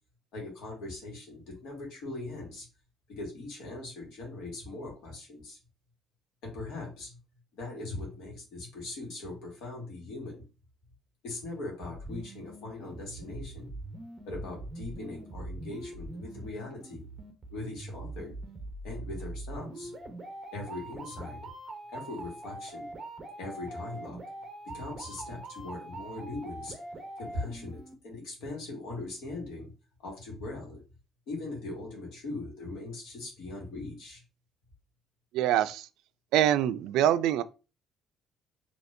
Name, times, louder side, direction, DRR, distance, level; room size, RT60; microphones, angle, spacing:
voice 1, 0.3-2.7 3.1-5.6 6.4-7.2 7.5-10.4 11.2-13.7 14.3-17.0 17.5-18.3 18.8-19.9 20.5-21.4 21.9-22.9 23.4-24.2 24.7-26.7 27.2-29.7 30.0-30.8 31.3-34.2, left 2 dB, 75° left, 1.7 m, -40 dB
sound 1, 11.9-27.9, right 2 dB, 20° right, 0.7 m, -43 dB
voice 2, 35.3-35.9 36.3-37.4, right 11 dB, 85° right, 0.3 m, -24 dB
4.2 x 2.9 x 2.6 m
cardioid pair, 175°, 0 cm